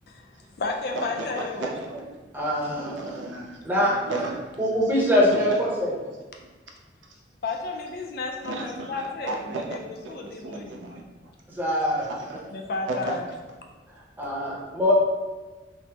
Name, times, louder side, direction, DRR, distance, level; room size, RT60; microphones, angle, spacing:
voice 1, 0.1-1.7 2.6-2.8 7.4-9.8 10.1-10.8 12.5-13.2, left 3 dB, 55° left, 2 dB, 0.4 m, -33 dB
voice 2, 0.9-5.6 6.0-6.1 8.4-11.3 12.0-12.5 12.9-13.2, right 2 dB, 85° right, 0 dB, 0.5 m, -35 dB
voice 3, 2.3-2.9 3.6-3.9 4.6-5.9 11.5-12.0 14.2-14.9, left 1 dB, 10° right, -6 dB, 0.6 m, -23 dB
3.4 x 2.0 x 2.9 m, 1.3 s
head